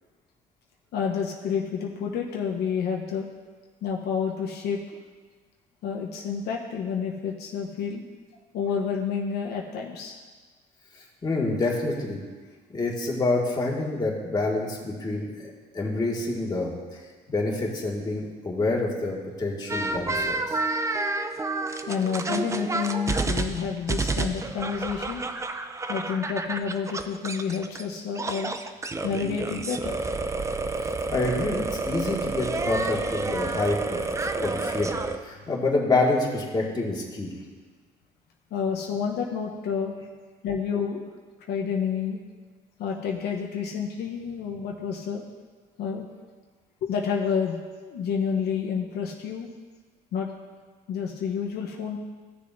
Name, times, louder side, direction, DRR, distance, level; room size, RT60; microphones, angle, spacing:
voice 1, 0.9-3.3 3.8-4.8 5.8-8.0 8.5-10.1 21.9-25.2 25.9-28.5 29.0-30.1 38.5-39.9 40.4-41.0 41.5-42.2 42.8-45.2 45.8-46.1 46.8-49.5 50.1-50.3 50.9-52.0, left 6 dB, 75° left, 0 dB, 1.0 m, -29 dB
voice 2, 11.2-12.2 12.7-17.0 17.3-20.6 31.1-34.9 35.2-37.3, left 2 dB, 25° left, -3 dB, 2.0 m, -27 dB
sound 1, 19.7-27.8 28.1-35.2, right 3 dB, 15° right, 0.5 m, -29 dB
15.5 x 6.8 x 2.7 m, 1.4 s
cardioid pair, 110°, 17 cm